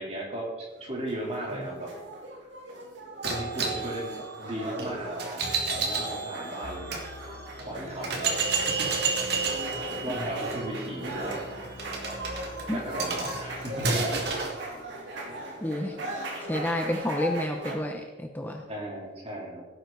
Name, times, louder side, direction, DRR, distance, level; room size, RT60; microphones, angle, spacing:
voice 1, 0.0-1.9 3.3-5.4 5.7-7.1 7.7-8.9 9.8-11.8 12.7-13.9 14.3-14.7 15.2-15.5 18.7-19.6, right 1 dB, 35° right, -2 dB, 3.6 m, -36 dB
sound 1, 0.8-17.7, right 1 dB, 80° right, 3.2 m, -39 dB
sound 2, 3.2-7.0 7.6-7.7 8.0-14.6, right 4 dB, 60° right, 2.4 m, -31 dB
sound 3, 6.6-14.0, left 1 dB, 55° left, 2.1 m, -46 dB
voice 2, 15.6-16.0 16.4-18.7, left 1 dB, 10° left, 3 dB, 0.8 m, -30 dB
17.0 x 9.1 x 4.1 m, 1.3 s
head